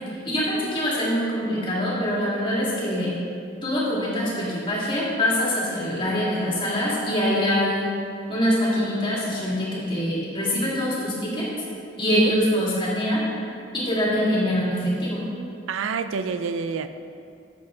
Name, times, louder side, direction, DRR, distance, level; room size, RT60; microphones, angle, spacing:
voice 1, 0.2-3.1 3.6-7.9 8.3-11.5 12.0-13.2 13.7-15.2, equal, 25° left, -6 dB, 2.4 m, -24 dB
voice 2, 15.7-16.9, right 5 dB, 75° right, 10 dB, 0.4 m, -27 dB
10.5 x 7.7 x 3.8 m, 2.5 s
head